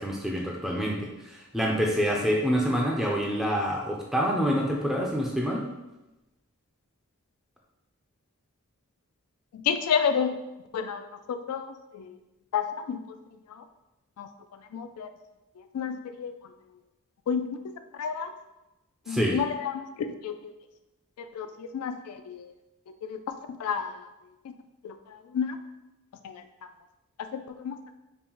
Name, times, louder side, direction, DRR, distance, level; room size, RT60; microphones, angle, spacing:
voice 1, 0.0-5.6 19.1-19.4, equal, ahead, -2 dB, 0.4 m, -27 dB
voice 2, 9.5-10.4 10.7-11.0 11.3-12.2 12.5-13.0 13.5-13.6 14.2-14.3 14.7-15.1 15.7-16.3 17.3-17.5 17.9-18.3 19.1-19.9 20.2-20.5 21.2-22.5 23.0-23.3 23.6-24.0 24.8-25.6 26.2-26.4 27.2-27.9, left 7 dB, 90° left, 9 dB, 0.3 m, -30 dB
5.3 x 2.1 x 2.9 m, 0.99 s
head